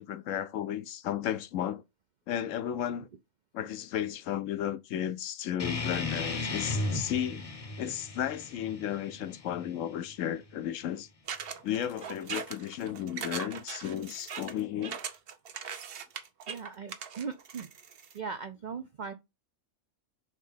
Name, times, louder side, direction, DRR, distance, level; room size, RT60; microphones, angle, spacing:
voice 1, 0.0-1.8 2.3-3.1 3.5-7.5 7.8-11.1 11.6-15.0, left 10 dB, 70° left, 0.9 m, -34 dB
sound 1, 5.6-10.6, left 2 dB, 30° left, 0.7 m, -36 dB
sound 2, 11.3-18.2, right 7 dB, 50° right, 0.8 m, -40 dB
voice 2, 16.5-17.7 18.1-19.1, right 5 dB, 70° right, 0.4 m, -39 dB
5.0 x 3.7 x 5.7 m
omnidirectional pair, 1.5 m